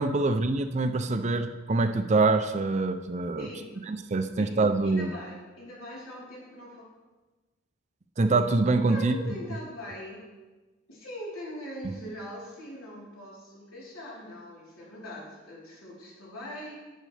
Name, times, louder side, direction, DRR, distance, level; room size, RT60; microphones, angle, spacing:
voice 1, 0.0-3.5 3.9-5.1 8.2-9.4 11.8-11.9, right 3 dB, 35° right, 9 dB, 0.4 m, -25 dB
voice 2, 3.4-3.7 4.4-4.6 4.8-6.8 8.9-10.2 10.9-16.8, left 1 dB, 80° left, -6 dB, 3.6 m, -41 dB
11.0 x 8.8 x 3.3 m, 1.2 s
head